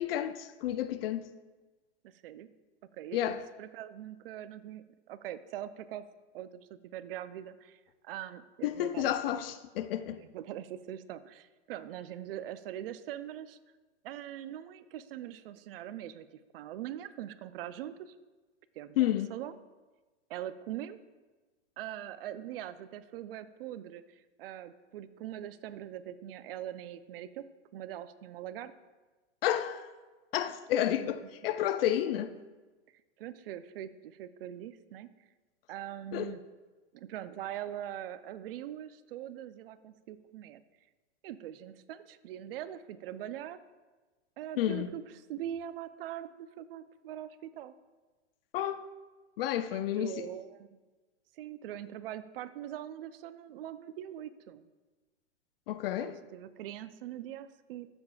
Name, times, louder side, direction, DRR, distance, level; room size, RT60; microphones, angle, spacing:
voice 1, 0.0-1.3 3.1-3.4 8.6-10.2 19.0-19.3 29.4-29.9 30.3-32.3 36.1-36.4 44.6-44.9 48.5-48.9 49.4-50.3 55.7-56.2, left 12 dB, 55° left, 0.6 m, -31 dB
voice 2, 2.0-2.5 3.0-6.0 6.3-9.1 10.2-13.6 14.0-16.3 16.5-18.1 18.8-19.6 20.3-21.0 21.8-24.0 24.4-27.4 27.7-28.7 31.0-31.5 33.2-35.1 35.7-36.4 36.9-40.6 41.2-43.6 44.4-45.0 45.3-47.7 49.7-50.8 51.4-54.7 56.0-57.9, right 11 dB, 50° right, 0.6 m, -42 dB
13.5 x 7.0 x 2.4 m
hypercardioid pair, 115°, 36 cm